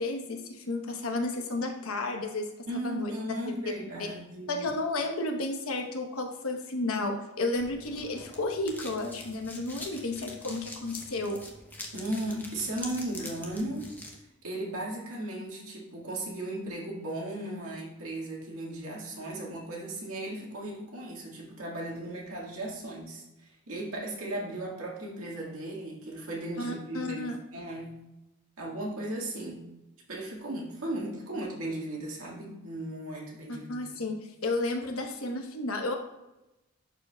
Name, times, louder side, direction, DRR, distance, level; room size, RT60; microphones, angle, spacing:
voice 1, 0.0-2.5 2.8-3.1 3.5-3.6 4.0-4.1 4.5-11.4 26.6-27.4 33.5-34.1 34.4-35.9, left 2 dB, 80° left, 3 dB, 1.0 m, -32 dB
voice 2, 2.7-4.7 11.9-13.9 14.4-27.9 28.6-29.6 30.1-34.0, right 1 dB, 85° right, -3 dB, 1.9 m, -36 dB
sound 1, 7.5-14.2, left 2 dB, 10° left, 0.7 m, -45 dB
11.0 x 4.6 x 2.3 m, 0.95 s
head